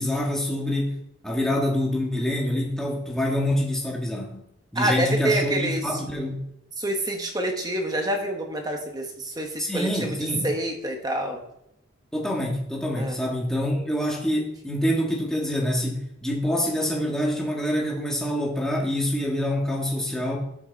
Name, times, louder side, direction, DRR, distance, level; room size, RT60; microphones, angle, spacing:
voice 1, 0.0-4.4 4.7-6.5 9.6-10.5 12.1-20.4, left 1 dB, 5° left, -2 dB, 1.8 m, -26 dB
voice 2, 4.7-5.8 6.8-10.2 10.4-11.4 12.9-13.2, right 1 dB, 20° right, 3 dB, 1.2 m, -27 dB
12.0 x 6.0 x 4.1 m, 0.79 s
head